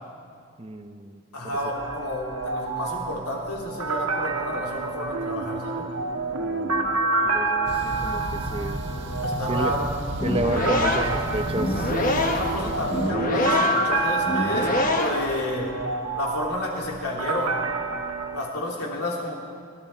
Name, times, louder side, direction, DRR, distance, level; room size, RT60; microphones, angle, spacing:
voice 1, 0.6-1.2 1.4-1.6 6.4-7.0 7.3-8.8 9.5-9.7 10.2-11.9, right 2 dB, 25° right, 8 dB, 0.6 m, -31 dB
voice 2, 1.3-5.9 9.2-9.9 12.2-15.8 16.1-17.6 18.3-19.3, left 1 dB, 90° left, -2 dB, 3.0 m, -31 dB
sound 1, 1.5-18.4, right 3 dB, 75° right, 1.4 m, -28 dB
sound 2, 7.7-13.1, right 1 dB, 50° right, 1.5 m, -33 dB
sound 3, 10.1-15.4, left 2 dB, 35° left, 1.2 m, -26 dB
24.0 x 12.0 x 4.4 m, 2.2 s
head